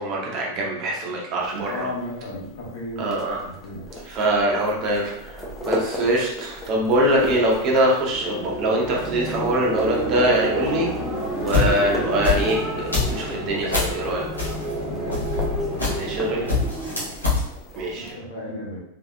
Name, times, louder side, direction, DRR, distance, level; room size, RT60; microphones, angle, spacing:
voice 1, 0.0-1.9 3.0-3.4 4.0-10.9 11.4-14.2 15.9-16.5 17.8-18.1, right 1 dB, 40° right, -2 dB, 0.9 m, -23 dB
sound 1, 1.4-18.1, left 1 dB, 10° left, 0.8 m, -38 dB
voice 2, 1.7-3.9 14.7-15.2 15.6-16.0 17.9-18.8, left 1 dB, 55° left, -3 dB, 1.3 m, -35 dB
sound 2, 8.0-17.3, right 1 dB, 20° right, 1.2 m, -30 dB
sound 3, 11.2-14.0 14.4-16.2 16.5-17.4, left 4 dB, 80° left, 1.3 m, -24 dB
4.0 x 3.5 x 2.3 m, 0.81 s
figure-of-eight pair, 90°, 0 cm